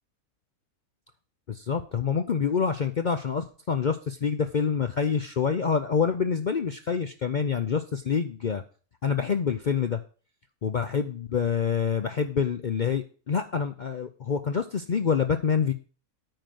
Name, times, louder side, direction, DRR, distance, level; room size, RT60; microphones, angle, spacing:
voice 1, 1.5-8.6 9.0-10.0 10.6-15.7, left 6 dB, 75° left, 8 dB, 0.4 m, -26 dB
9.1 x 4.9 x 7.6 m, 0.38 s
omnidirectional pair, 1.6 m